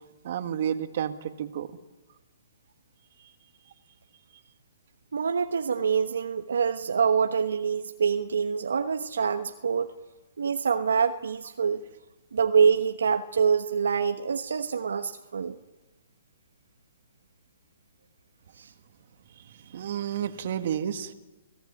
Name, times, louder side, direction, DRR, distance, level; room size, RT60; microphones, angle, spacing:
voice 1, 0.2-1.7 3.2-3.3 19.4-21.1, right 9 dB, 55° right, 8 dB, 2.0 m, -31 dB
voice 2, 5.1-9.9 10.4-11.8 12.3-15.6 18.6-18.7, right 6 dB, 80° right, 7 dB, 1.2 m, -25 dB
29.5 x 18.0 x 9.7 m, 1.2 s
hypercardioid pair, 140°, 0 cm